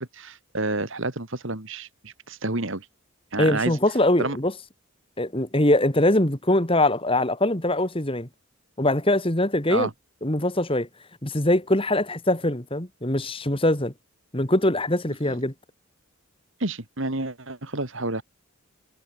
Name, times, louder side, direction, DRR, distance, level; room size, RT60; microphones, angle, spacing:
voice 1, 0.1-2.9 3.3-3.8 4.2-4.4 9.7-9.9 15.3-15.4 16.6-18.2, right 2 dB, 60° right, 2.4 m, -29 dB
voice 2, 3.4-4.5 5.2-8.3 8.8-9.9 10.2-10.9 11.2-13.9 14.3-15.5, left 1 dB, 25° left, 2.4 m, -22 dB
head